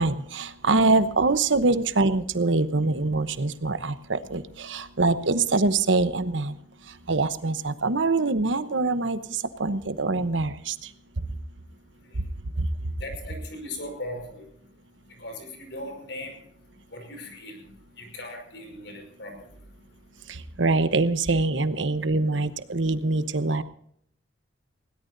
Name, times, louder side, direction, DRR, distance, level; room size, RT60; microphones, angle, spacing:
voice 1, 0.0-6.6 7.1-10.7 20.3-23.6, right 3 dB, 85° right, 12 dB, 1.0 m, -24 dB
voice 2, 13.0-14.4 15.2-16.4 16.9-17.6 18.0-19.3, left 1 dB, 70° left, 4 dB, 5.4 m, -38 dB
20.5 x 17.5 x 2.7 m, 0.68 s
head